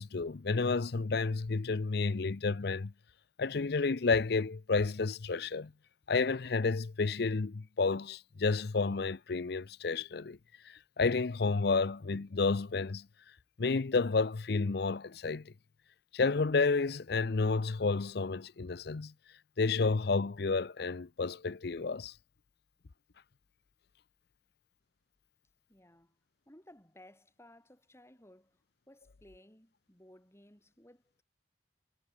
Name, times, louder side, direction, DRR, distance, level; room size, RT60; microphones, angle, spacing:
voice 1, 0.0-2.9 3.4-5.7 6.1-10.4 10.7-13.1 13.6-15.5 16.1-19.1 19.6-22.1, left 4 dB, 60° left, 0.6 m, -31 dB
voice 2, 25.7-26.2 26.5-31.2, left 1 dB, 15° left, 4.6 m, -59 dB
head